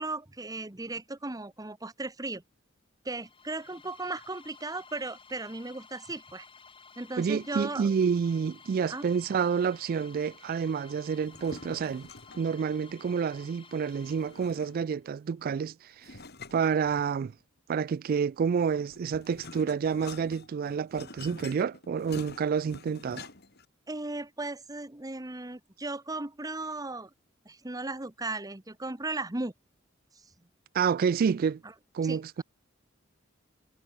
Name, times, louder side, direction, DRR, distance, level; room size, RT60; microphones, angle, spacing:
voice 1, 0.0-2.4 3.0-6.5 7.0-7.9 8.9-9.1 23.9-27.1 27.4-29.5 31.6-31.7 32.0-32.4, right 2 dB, 20° right, 1.3 m, -36 dB
sound 1, 3.1-14.9, left 5 dB, 25° left, 2.8 m, -54 dB
voice 2, 7.2-12.1 12.4-15.7 16.0-16.1 16.5-17.3 17.7-23.3 30.7-31.6 31.9-32.4, right 6 dB, 50° right, 0.3 m, -29 dB
sound 2, 11.2-12.6 14.0-15.0 16.0-17.4 18.6-23.6, left 3 dB, 55° left, 4.9 m, -47 dB
head